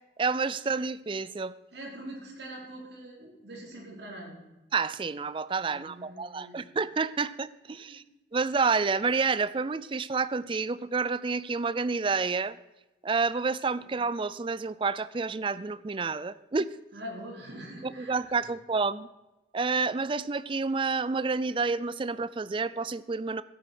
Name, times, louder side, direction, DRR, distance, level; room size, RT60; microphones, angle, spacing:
voice 1, 0.2-1.5 4.7-8.0 8.3-12.6 13.0-16.8 17.8-19.1 19.5-23.4, right 4 dB, 30° right, 17 dB, 0.4 m, -29 dB
voice 2, 1.7-4.4 5.7-6.7 7.9-8.0 13.8-13.9 16.9-18.5, right 1 dB, 70° right, -2 dB, 4.2 m, -43 dB
13.5 x 8.5 x 6.1 m, 1.0 s
head